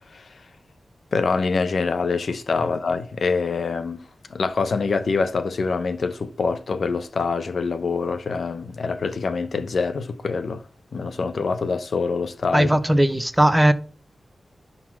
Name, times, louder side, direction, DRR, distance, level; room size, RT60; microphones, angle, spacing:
voice 1, 1.1-4.0 4.3-10.6 10.9-12.7, left 4 dB, 70° left, 0.9 m, -25 dB
voice 2, 12.5-13.7, right 1 dB, 10° right, 0.9 m, -18 dB
11.0 x 4.0 x 6.0 m
wide cardioid pair, 90°, 0 cm